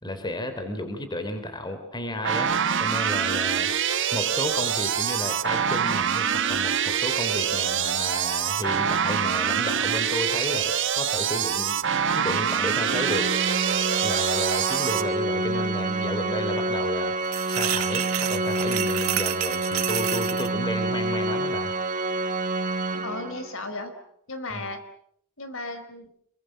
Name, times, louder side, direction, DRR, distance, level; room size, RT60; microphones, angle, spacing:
voice 1, 0.0-2.5 2.8-3.7 4.1-11.8 12.1-13.3 14.0-21.7 24.5-24.7, left 1 dB, 20° left, 8 dB, 4.0 m, -33 dB
sound 1, 2.2-15.0, right 8 dB, 60° right, 1.6 m, -25 dB
Organ, 12.8-23.6, right 2 dB, 40° right, 1.8 m, -28 dB
sound 2, 17.3-20.5, right 12 dB, 80° right, 1.8 m, -29 dB
voice 2, 23.0-23.9 24.3-24.8 25.4-26.1, left 2 dB, 65° left, 9 dB, 4.6 m, -35 dB
29.0 x 23.5 x 7.7 m, 0.68 s
head